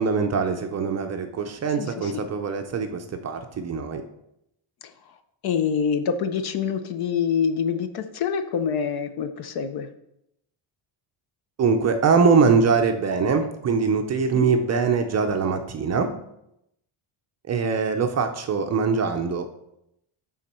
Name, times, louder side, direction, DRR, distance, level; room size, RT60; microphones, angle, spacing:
voice 1, 0.0-4.0 11.6-16.1 17.5-19.5, right 5 dB, 35° right, 5 dB, 0.5 m, -22 dB
voice 2, 1.8-2.3 5.4-9.9 14.3-14.5, left 7 dB, 50° left, 10 dB, 0.6 m, -26 dB
11.0 x 3.8 x 4.3 m, 0.81 s
cardioid pair, 175°, 50 cm